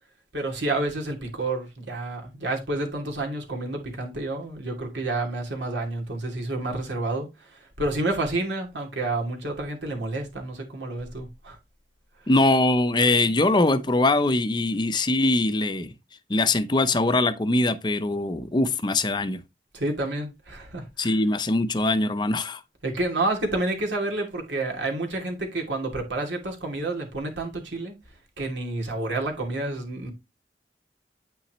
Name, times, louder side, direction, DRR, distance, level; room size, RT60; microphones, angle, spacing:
voice 1, 0.3-11.6 19.7-21.2 22.8-28.0 28.4-30.1, right 2 dB, 90° right, 2.7 m, -29 dB
voice 2, 12.3-15.9 16.3-19.4 21.0-22.6, left 2 dB, 25° left, 0.6 m, -22 dB
8.8 x 5.7 x 3.0 m
head